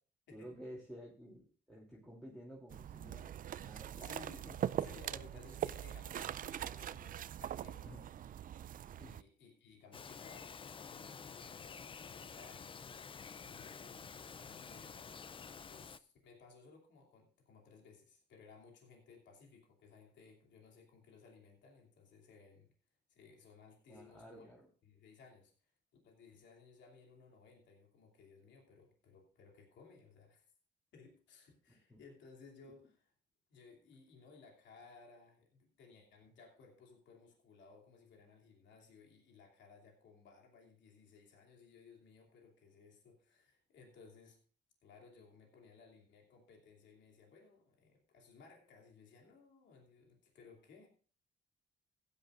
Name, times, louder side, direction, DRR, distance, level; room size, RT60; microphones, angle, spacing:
voice 1, 0.3-3.4 3.6-4.2 4.5-4.6 5.1-5.2 7.8-8.1 9.0-9.2 23.9-24.7 31.7-32.0, equal, 5° left, -6 dB, 3.0 m, -52 dB
sound 1, 2.7-9.2, right 10 dB, 50° right, 0.4 m, -42 dB
voice 2, 4.0-4.5 4.8-8.0 9.0-13.1 13.4-15.0 15.7-22.7 23.1-24.5 24.9-25.7 26.0-30.5 30.9-33.1 33.5-44.4 44.8-50.9, left 4 dB, 80° left, 1 dB, 2.8 m, -60 dB
Bird vocalization bird call bird song, 9.9-16.0, left 6 dB, 30° left, 0.4 m, -50 dB
15.5 x 10.5 x 2.5 m, 0.40 s
cardioid pair, 100°, 18 cm